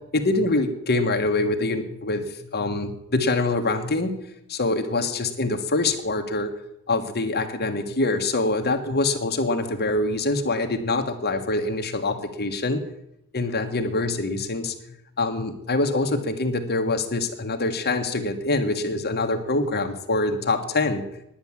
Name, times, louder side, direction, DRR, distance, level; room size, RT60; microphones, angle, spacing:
voice 1, 0.1-2.2 2.5-4.1 4.5-6.5 6.9-12.8 13.3-14.7 15.2-21.0, left 2 dB, 45° left, 5 dB, 1.4 m, -24 dB
10.0 x 9.7 x 7.3 m, 0.79 s
head